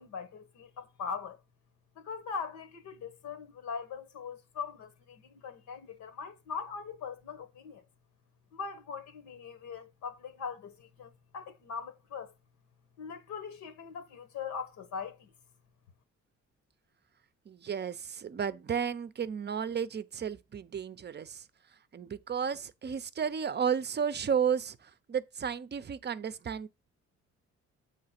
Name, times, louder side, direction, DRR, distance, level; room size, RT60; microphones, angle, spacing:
voice 1, 0.0-1.4 2.0-7.8 8.5-12.3 13.0-15.3, left 6 dB, 70° left, 1.3 m, -41 dB
voice 2, 17.5-21.5 21.9-26.7, right 7 dB, 35° right, 0.6 m, -33 dB
7.7 x 3.3 x 5.8 m
cardioid pair, 90°, 30 cm